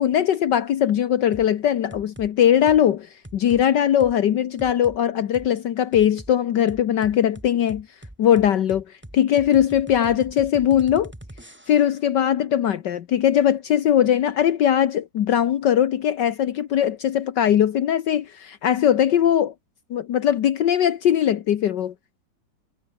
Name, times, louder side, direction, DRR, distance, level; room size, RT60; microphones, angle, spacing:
voice 1, 0.0-7.9 8.2-8.8 9.1-11.1 11.7-19.5 19.9-21.9, left 10 dB, 70° left, 1.6 m, -20 dB
sound 1, 1.3-1.5 1.9-2.3 2.7-2.9 3.2-3.6 4.0-4.1 4.6-5.0 5.3-5.5 5.9-6.3 6.7-12.0, right 1 dB, 5° right, 2.2 m, -42 dB
omnidirectional pair, 2.1 m